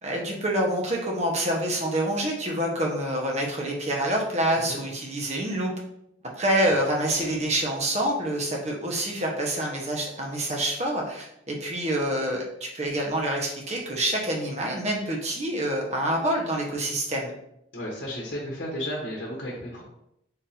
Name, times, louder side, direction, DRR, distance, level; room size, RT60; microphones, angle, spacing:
voice 1, 0.0-5.7 6.4-12.4 12.7-17.3, right 1 dB, 35° right, -1 dB, 0.9 m, -27 dB
voice 2, 17.7-19.8, equal, 65° left, -3 dB, 0.9 m, -33 dB
3.9 x 2.6 x 4.2 m, 0.78 s
head